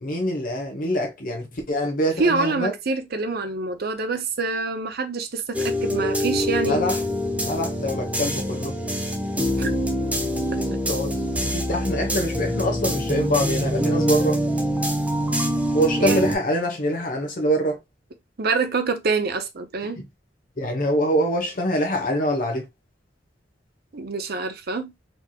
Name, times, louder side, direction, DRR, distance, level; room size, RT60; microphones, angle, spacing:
voice 1, 0.0-2.7 6.6-7.0 7.4-8.8 10.6-14.4 15.7-17.8 20.0-20.1 20.6-22.7, equal, 50° left, 1.0 m, -25 dB
voice 2, 2.2-6.8 9.6-9.7 16.0-16.3 18.4-20.0 23.9-24.9, right 4 dB, 55° right, 0.7 m, -26 dB
sound 1, 5.5-16.3, equal, 10° right, 0.7 m, -25 dB
4.5 x 3.0 x 2.3 m
head